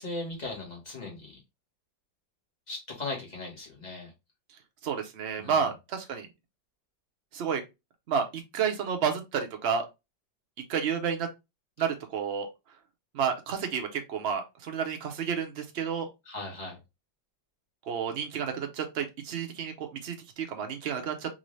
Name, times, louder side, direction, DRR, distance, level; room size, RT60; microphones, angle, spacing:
voice 1, 0.0-1.4 2.7-4.1 5.4-5.7 16.2-16.8, left 2 dB, 25° left, -2 dB, 1.3 m, -38 dB
voice 2, 4.8-6.3 7.3-7.6 8.1-9.9 10.7-11.3 11.8-12.5 13.1-16.1 17.9-21.3, right 7 dB, 90° right, 4 dB, 0.5 m, -30 dB
3.8 x 2.6 x 3.1 m, 0.23 s
omnidirectional pair, 2.1 m